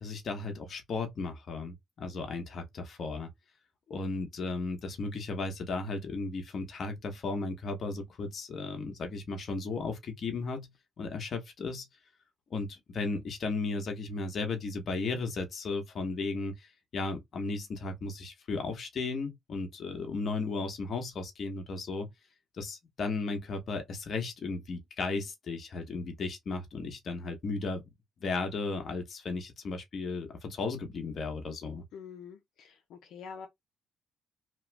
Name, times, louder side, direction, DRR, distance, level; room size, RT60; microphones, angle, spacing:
voice 1, 0.0-3.3 3.9-10.7 11.0-11.9 12.5-16.7 16.9-22.1 22.5-27.8 28.2-31.8, left 3 dB, 55° left, 1.2 m, -35 dB
voice 2, 31.9-33.5, left 6 dB, 85° left, 0.8 m, -46 dB
3.1 x 2.3 x 3.4 m
cardioid pair, 90°, 0 cm